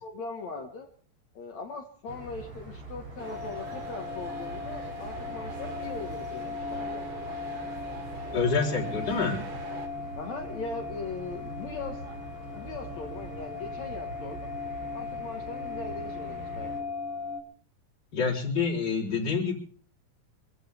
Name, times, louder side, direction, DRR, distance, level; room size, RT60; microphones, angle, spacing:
voice 1, 0.0-0.9 1.3-7.0 10.2-12.0 12.5-14.5 14.9-16.9, left 4 dB, 55° left, 3 dB, 2.7 m, -40 dB
sound 1, 2.1-16.8, right 2 dB, 45° right, 4.2 m, -43 dB
sound 2, 3.2-17.4, left 4 dB, 90° left, 4.7 m, -38 dB
sound 3, 3.2-9.9, right 5 dB, 65° right, 3.8 m, -44 dB
voice 2, 8.3-9.4 18.1-19.5, left 4 dB, 30° left, -2 dB, 4.2 m, -27 dB
26.0 x 15.5 x 3.5 m, 0.43 s
omnidirectional pair, 4.2 m